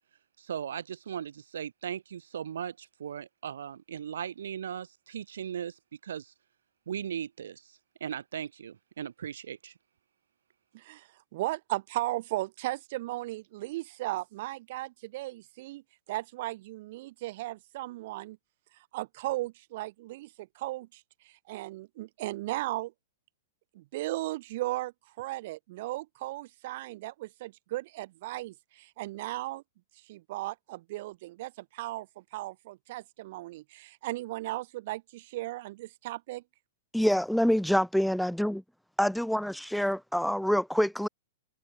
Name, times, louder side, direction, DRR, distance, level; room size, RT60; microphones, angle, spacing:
voice 1, 0.4-6.3 6.9-9.7, right 8 dB, 70° right, 1.9 m, -38 dB
voice 2, 10.7-18.4 18.9-22.9 23.7-29.6 30.1-36.4, right 18 dB, 55° right, 2.1 m, -36 dB
voice 3, 36.9-38.6 39.0-41.1, equal, ahead, 1.8 m, -26 dB
hypercardioid pair, 110°, 0 cm